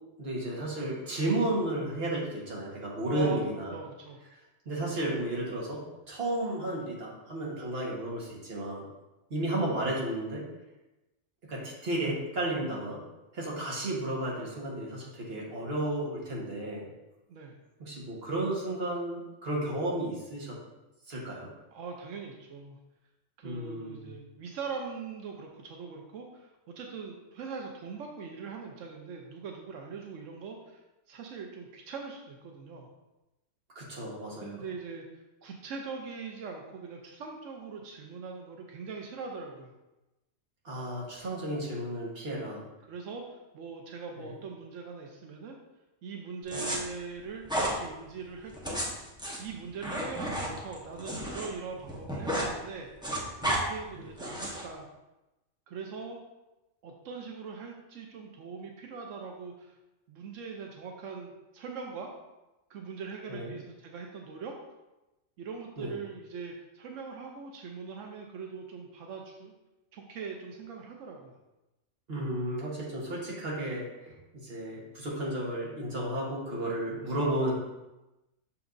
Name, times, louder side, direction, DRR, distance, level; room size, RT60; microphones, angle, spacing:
voice 1, 0.2-3.8 4.6-8.9 9.3-10.4 11.5-13.0 13.3-16.9 17.8-20.6 21.1-21.5 23.4-24.1 33.7-34.6 40.6-42.6 44.2-44.4 53.9-54.0 63.3-63.5 65.8-65.9 72.1-77.5, right 1 dB, 55° right, -3 dB, 1.6 m, -33 dB
voice 2, 3.1-3.4 3.7-4.2 17.3-17.6 21.7-22.8 23.4-32.9 34.4-35.1 35.4-39.7 42.8-45.6 46.0-48.8 49.4-54.9 55.7-56.2 56.8-59.8 60.1-62.1 62.7-64.5 65.4-69.5 69.9-71.3, right 5 dB, 90° right, 2 dB, 1.0 m, -41 dB
sound 1, 46.5-46.8 47.5-47.8 48.5-51.5 51.8-52.5 52.8-53.6 54.2-54.7, equal, 5° right, 0.9 m, -32 dB
6.3 x 5.8 x 2.6 m, 1.0 s
omnidirectional pair, 1.3 m